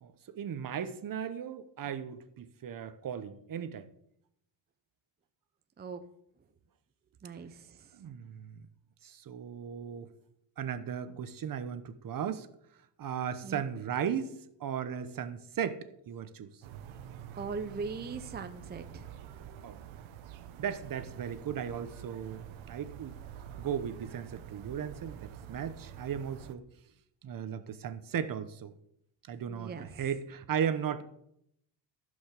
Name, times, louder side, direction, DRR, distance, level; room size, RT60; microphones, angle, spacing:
voice 1, 0.0-3.9 7.9-8.5 9.0-10.1 10.6-12.5 13.0-16.5 19.6-19.8 20.6-23.2 23.6-26.6 27.2-28.7 29.3-31.0, right 8 dB, 45° right, 11 dB, 1.0 m, -36 dB
voice 2, 7.2-7.9 13.4-13.7 17.3-19.1 29.5-29.9, right 4 dB, 20° right, 7 dB, 0.7 m, -40 dB
sound 1, 16.6-26.5, right 9 dB, 85° right, 1.2 m, -47 dB
15.5 x 5.4 x 6.7 m, 0.75 s
cardioid pair, 120°, 46 cm